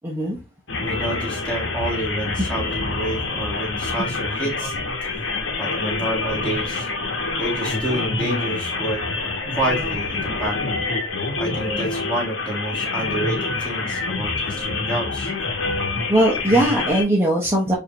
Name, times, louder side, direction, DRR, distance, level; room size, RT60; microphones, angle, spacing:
voice 1, 0.0-0.4 16.1-17.7, right 1 dB, 10° right, -4 dB, 0.8 m, -19 dB
sound 1, 0.7-17.0, left 3 dB, 85° left, 1.0 m, -26 dB
voice 2, 0.8-4.7 5.0-5.3 5.6-6.9 7.4-9.0 9.5-10.8 11.4-15.3, right 1 dB, 5° left, -3 dB, 1.6 m, -28 dB
4.8 x 2.6 x 2.9 m, 0.25 s
head